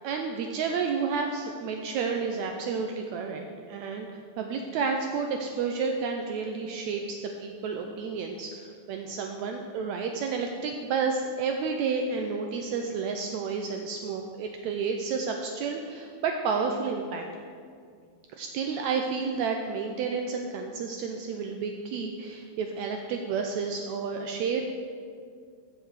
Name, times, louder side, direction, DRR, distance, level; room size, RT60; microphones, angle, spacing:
voice 1, 0.0-4.1 4.4-17.2 18.4-24.7, right 5 dB, 85° right, 3 dB, 1.6 m, -31 dB
15.0 x 5.8 x 4.8 m, 2.2 s
omnidirectional pair, 3.8 m